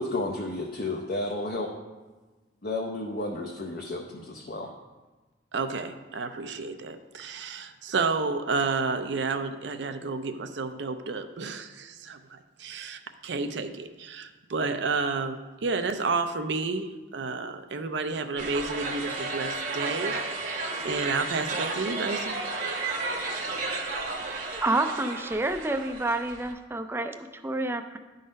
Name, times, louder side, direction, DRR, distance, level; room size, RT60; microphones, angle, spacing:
voice 1, 0.0-1.7 2.6-4.7, left 2 dB, 50° left, 0 dB, 0.7 m, -32 dB
voice 2, 5.5-22.3, right 4 dB, 70° right, 8 dB, 0.5 m, -31 dB
sound 1, 18.4-26.5, right 3 dB, 45° right, 0.9 m, -33 dB
voice 3, 24.6-28.0, right 2 dB, 10° right, 7 dB, 0.4 m, -29 dB
10.5 x 3.9 x 5.2 m, 1.2 s
head